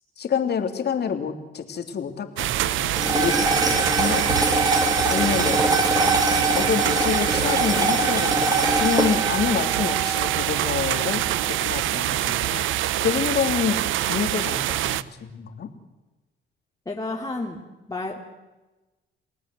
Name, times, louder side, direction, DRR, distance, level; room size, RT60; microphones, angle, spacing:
voice 1, 0.2-4.6 5.1-5.6 6.6-12.6 13.0-15.7, left 7 dB, 55° left, 7 dB, 3.1 m, -28 dB
sound 1, 2.4-15.0, right 14 dB, 85° right, 0.8 m, -25 dB
sound 2, 3.0-11.5, right 2 dB, 20° right, 4.4 m, -24 dB
voice 2, 16.9-17.6 17.9-18.2, left 2 dB, 20° left, 0 dB, 2.8 m, -30 dB
29.0 x 18.0 x 7.7 m, 1.1 s
cardioid pair, 90°, 20 cm